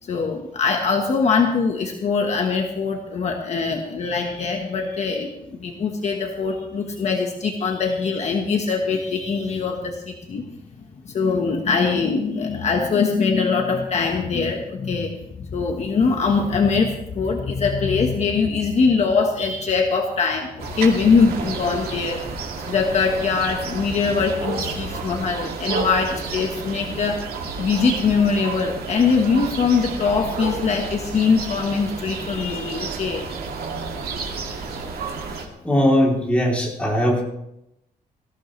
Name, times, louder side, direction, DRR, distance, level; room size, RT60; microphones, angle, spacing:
voice 1, 0.0-10.5 11.0-22.2 22.7-27.3 27.6-33.3, left 5 dB, 45° left, 2 dB, 1.4 m, -22 dB
sound 1, 20.6-35.5, right 4 dB, 85° right, 2.4 m, -31 dB
voice 2, 35.6-37.2, equal, 10° left, -3 dB, 3.3 m, -19 dB
19.0 x 15.0 x 3.3 m, 0.84 s
wide cardioid pair, 180°, 16 cm